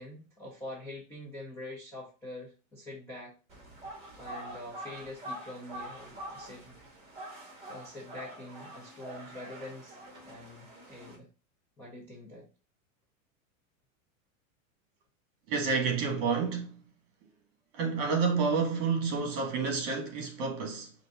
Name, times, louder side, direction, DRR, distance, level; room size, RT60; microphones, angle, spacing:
voice 1, 0.0-3.3 4.2-6.8 7.7-10.0 10.2-11.3 11.8-12.5, left 1 dB, 5° left, 0.3 m, -45 dB
sound 1, 3.5-11.2, right 1 dB, 15° right, 1.8 m, -45 dB
voice 2, 15.5-16.8 17.7-20.9, right 5 dB, 45° right, 1.4 m, -29 dB
5.1 x 2.6 x 3.4 m
supercardioid pair, 150°, 41 cm